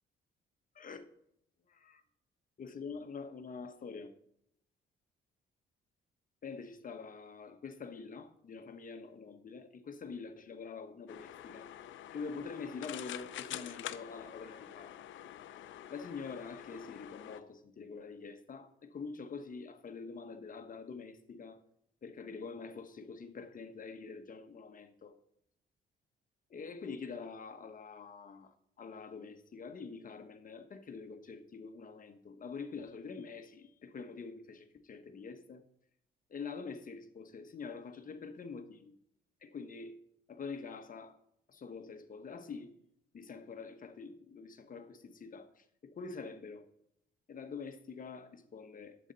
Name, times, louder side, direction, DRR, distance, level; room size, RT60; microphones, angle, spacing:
voice 1, 0.7-1.1 1.7-2.0 2.6-4.1 6.4-11.7 12.1-14.9 15.9-21.6 22.0-25.2 26.5-28.5 28.8-35.6 36.3-38.9 39.4-39.9 40.3-41.2 41.5-42.7 43.1-46.7 47.3-49.1, left 5 dB, 45° left, 1.3 m, -45 dB
sound 1, 11.1-17.4, left 11 dB, 75° left, 0.6 m, -46 dB
11.0 x 8.0 x 4.1 m
cardioid pair, 90°, 20 cm